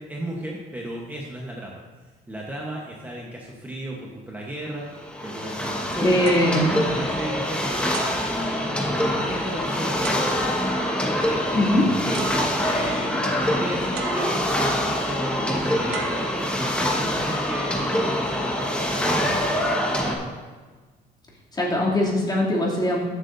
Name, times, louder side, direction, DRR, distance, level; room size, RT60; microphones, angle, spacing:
voice 1, 0.0-1.8 2.3-4.8 5.2-8.7 9.3-10.0 11.3-11.4 11.8-13.3 13.6-20.3, right 1 dB, 10° right, -2 dB, 1.1 m, -34 dB
sound 1, 4.9-20.1, equal, 5° left, 1.4 m, -25 dB
voice 2, 6.0-6.7 11.5-11.8 21.5-23.1, left 1 dB, 25° left, -5 dB, 2.8 m, -21 dB
sound 2, 6.3-7.5 7.9-9.1 10.0-10.7 11.8-11.9 12.1-13.0 14.0-14.8 15.9-17.0 17.7-18.0, right 6 dB, 85° right, 0.9 m, -39 dB
13.5 x 7.8 x 2.7 m, 1.4 s
cardioid pair, 110°, 17 cm